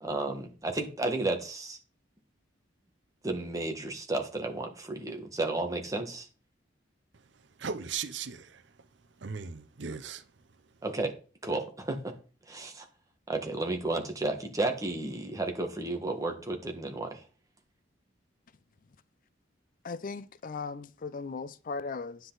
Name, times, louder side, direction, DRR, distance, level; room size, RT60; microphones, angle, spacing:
voice 1, 0.0-1.8 3.2-6.3 10.8-11.1 11.4-12.1 12.5-12.9 13.3-17.2, right 2 dB, 20° right, 1.5 m, -32 dB
voice 2, 7.6-8.7 9.2-10.3, right 6 dB, 65° right, 0.7 m, -37 dB
voice 3, 19.8-22.2, left 4 dB, 45° left, 0.5 m, -37 dB
9.7 x 7.9 x 4.0 m
head